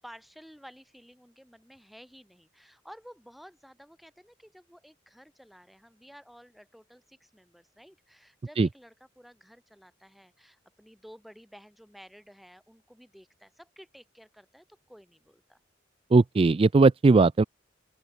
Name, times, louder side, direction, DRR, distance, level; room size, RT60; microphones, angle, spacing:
voice 1, 0.0-15.6, equal, ahead, 7.4 m, -53 dB
voice 2, 16.1-17.4, right 3 dB, 30° right, 0.4 m, -19 dB
open air
head